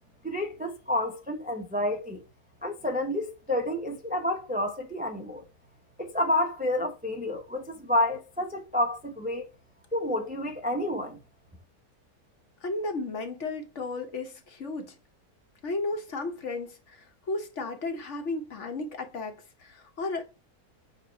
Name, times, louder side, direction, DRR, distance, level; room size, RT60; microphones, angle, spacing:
voice 1, 0.2-2.2 2.6-5.4 6.0-9.5 9.9-11.2, left 1 dB, 10° right, 0.4 m, -29 dB
voice 2, 12.6-14.9 15.6-20.2, left 3 dB, 55° left, 1.1 m, -34 dB
7.1 x 2.5 x 5.4 m
omnidirectional pair, 1.7 m